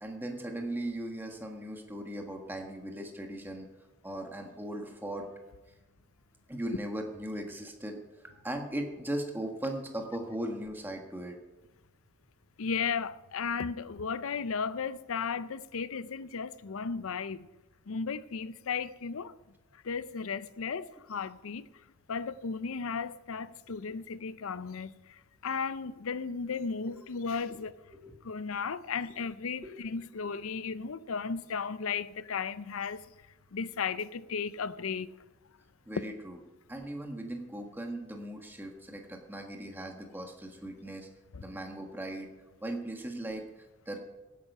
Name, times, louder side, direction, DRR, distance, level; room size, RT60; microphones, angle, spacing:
voice 1, 0.0-3.7 4.0-5.2 6.5-7.9 8.4-11.4 27.9-28.1 35.8-36.4 36.7-41.1 41.4-42.3 42.6-43.4 43.9-44.0, right 1 dB, 10° right, 1.6 m, -38 dB
voice 2, 12.6-17.5 17.9-19.3 19.8-21.7 22.1-27.7 28.2-33.1 33.5-35.1 41.3-41.4, left 5 dB, 80° left, 0.6 m, -35 dB
16.0 x 9.3 x 5.5 m
head